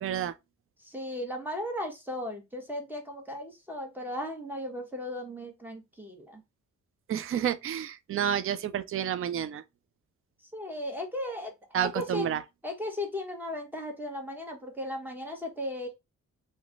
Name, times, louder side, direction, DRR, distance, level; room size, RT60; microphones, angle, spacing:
voice 1, 0.0-0.3 7.1-9.6 11.7-12.4, right 9 dB, 45° right, 0.4 m, -30 dB
voice 2, 0.8-6.4 10.5-12.3 12.6-15.9, left 1 dB, 5° right, 1.1 m, -36 dB
3.1 x 2.2 x 3.7 m
cardioid pair, 85°, 30 cm